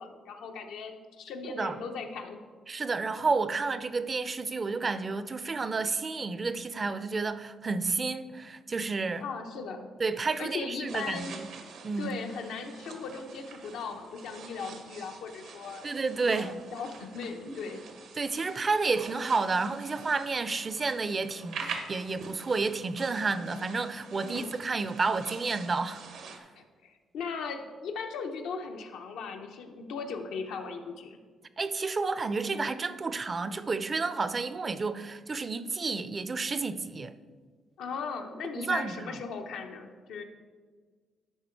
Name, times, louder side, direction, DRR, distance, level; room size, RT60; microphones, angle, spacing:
voice 1, 0.0-2.4 9.2-9.9 10.4-11.4 12.0-15.9 16.3-17.8 24.2-24.5 26.6-31.2 37.8-40.2, left 5 dB, 85° left, 0.7 m, -38 dB
voice 2, 2.7-9.2 10.0-11.5 11.8-12.2 15.8-16.5 18.2-26.0 31.6-37.1 38.6-39.1, right 4 dB, 35° right, 0.4 m, -30 dB
sound 1, 10.9-26.4, right 5 dB, 75° right, 0.9 m, -45 dB
11.0 x 3.8 x 4.4 m
cardioid pair, 90°, 0 cm